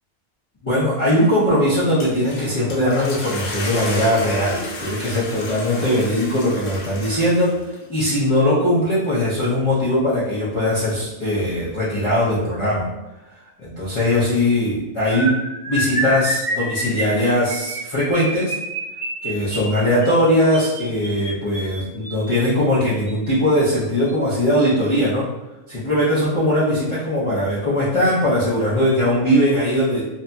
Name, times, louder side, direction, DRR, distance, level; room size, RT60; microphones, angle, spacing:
voice 1, 0.6-7.5 7.9-12.9 13.6-18.5 19.2-25.3 25.7-30.0, left 1 dB, 40° left, -10 dB, 0.4 m, -20 dB
sound 1, 1.8-7.8, left 2 dB, 75° left, 1.1 m, -32 dB
sound 2, 15.1-22.3 23.1-23.3 23.6-23.8 24.1-24.3, right 1 dB, 25° left, 1.0 m, -28 dB
2.8 x 2.6 x 2.2 m, 1.0 s
omnidirectional pair, 1.5 m